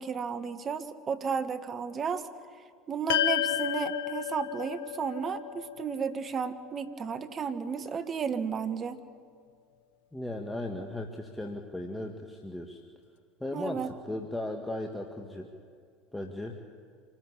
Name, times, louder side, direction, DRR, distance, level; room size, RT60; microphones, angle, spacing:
voice 1, 0.0-2.3 2.9-9.0 13.5-13.9, right 6 dB, 35° right, 11 dB, 1.5 m, -33 dB
sound 1, 3.1-7.6, left 11 dB, 75° left, 0.8 m, -32 dB
voice 2, 10.1-12.8 13.4-15.5 16.1-16.6, left 1 dB, 5° left, 3 dB, 1.9 m, -36 dB
26.0 x 13.5 x 9.8 m, 2.1 s
hypercardioid pair, 75°, 0 cm